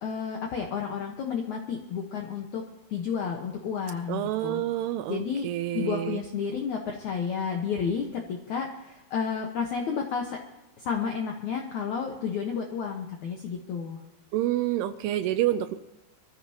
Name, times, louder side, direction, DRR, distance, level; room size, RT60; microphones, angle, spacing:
voice 1, 0.0-2.6 2.9-4.6 5.1-5.5 5.7-10.4 10.8-14.0, left 6 dB, 75° left, 2 dB, 1.7 m, -31 dB
voice 2, 4.1-6.2 14.3-15.8, right 13 dB, 80° right, 10 dB, 2.4 m, -28 dB
24.0 x 14.5 x 2.9 m, 0.99 s
omnidirectional pair, 5.2 m